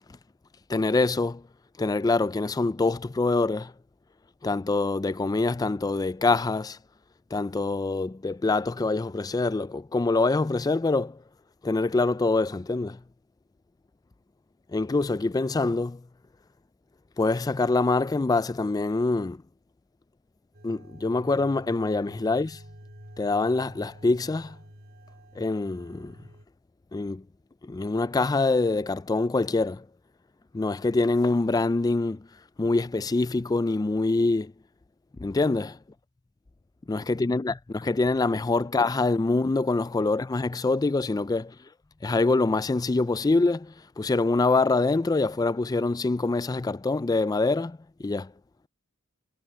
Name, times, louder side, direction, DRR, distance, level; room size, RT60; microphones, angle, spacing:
voice 1, 0.7-1.4 1.8-3.7 4.4-6.8 7.3-11.2 11.6-13.0 14.7-16.0 17.2-19.4 20.6-22.6 23.2-24.6 25.4-26.2 26.9-27.2 27.6-29.9 30.5-32.3 32.6-34.5 35.2-35.8 36.9-41.6 42.0-48.3, left 3 dB, 20° left, 0.3 m, -25 dB
sound 1, 20.5-26.4, equal, 50° right, 4.7 m, -48 dB
head